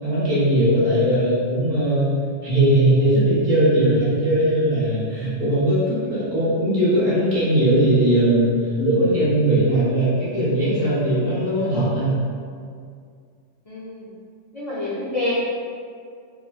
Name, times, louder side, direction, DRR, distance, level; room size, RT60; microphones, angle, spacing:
voice 1, 0.0-12.2, right 1 dB, 50° right, -9 dB, 1.1 m, -19 dB
voice 2, 13.7-14.1 14.5-15.3, left 2 dB, 55° left, -10 dB, 0.4 m, -28 dB
3.1 x 2.7 x 2.3 m, 2.2 s
omnidirectional pair, 1.4 m